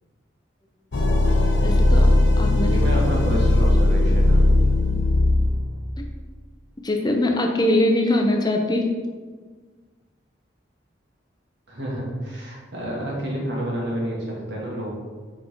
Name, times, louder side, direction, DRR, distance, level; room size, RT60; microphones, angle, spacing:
sound 1, 0.9-5.9, left 2 dB, 85° left, 0.7 m, -18 dB
voice 1, 1.6-2.1 2.4-2.8 6.0-6.1 6.8-8.9, left 1 dB, 20° left, 2 dB, 0.5 m, -22 dB
voice 2, 2.7-4.5 11.7-14.9, right 1 dB, 70° right, -4 dB, 1.7 m, -29 dB
4.9 x 4.4 x 4.5 m, 1.4 s
head